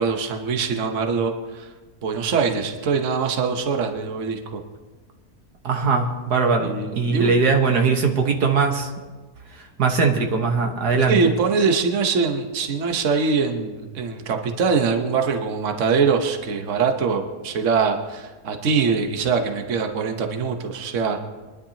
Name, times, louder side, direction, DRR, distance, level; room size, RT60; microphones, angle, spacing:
voice 1, 0.0-1.7 2.0-4.6 6.6-7.4 11.0-21.2, right 5 dB, 55° right, 4 dB, 1.3 m, -23 dB
voice 2, 5.6-8.9 9.5-11.2, right 4 dB, 85° right, 2 dB, 1.9 m, -20 dB
23.5 x 11.0 x 2.9 m, 1.3 s
omnidirectional pair, 1.6 m